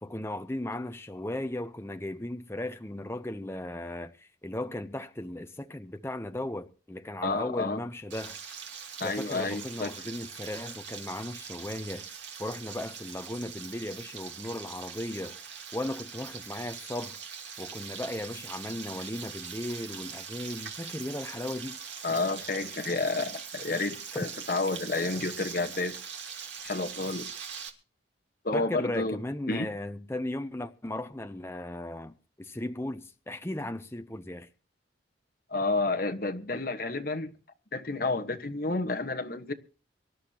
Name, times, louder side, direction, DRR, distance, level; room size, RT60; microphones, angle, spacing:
voice 1, 0.0-8.4 9.0-15.3 15.7-17.2 17.6-21.8 28.5-34.5, left 1 dB, 15° left, 0.7 m, -36 dB
voice 2, 7.2-7.8 9.0-9.9 22.0-26.0 26.6-27.3 28.4-29.2 29.5-29.7 35.5-37.3 37.7-39.5, left 3 dB, 50° left, 1.4 m, -30 dB
Frying (food), 8.1-27.7, right 7 dB, 70° right, 2.5 m, -42 dB
24.0 x 12.0 x 2.9 m
head